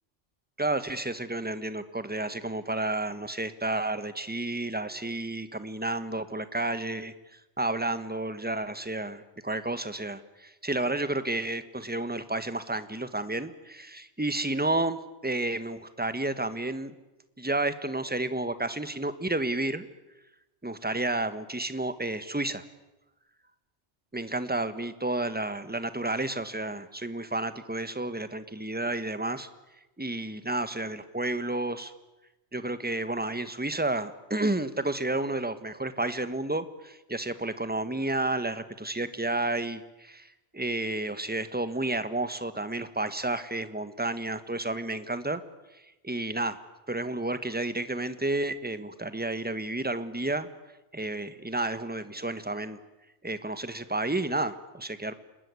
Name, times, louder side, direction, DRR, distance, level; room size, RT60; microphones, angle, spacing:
voice 1, 0.6-7.1 7.6-16.9 17.4-19.9 20.6-22.6 24.1-29.5 30.0-31.9 32.5-40.3 40.5-45.4 46.0-46.6 46.9-50.5 50.9-52.8 53.2-55.1, right 2 dB, 10° right, 12 dB, 1.3 m, -31 dB
29.0 x 20.5 x 9.6 m, 1.0 s
omnidirectional pair, 1.2 m